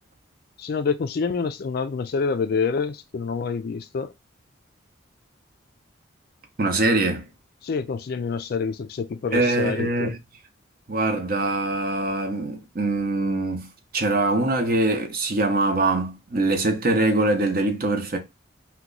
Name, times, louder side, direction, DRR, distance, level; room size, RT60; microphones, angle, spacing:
voice 1, 0.6-4.1 7.6-10.1, left 5 dB, 50° left, 0.3 m, -27 dB
voice 2, 6.6-7.3 9.3-10.2 10.9-13.7 13.9-18.2, right 2 dB, 45° right, 0.7 m, -23 dB
2.9 x 2.2 x 3.7 m
head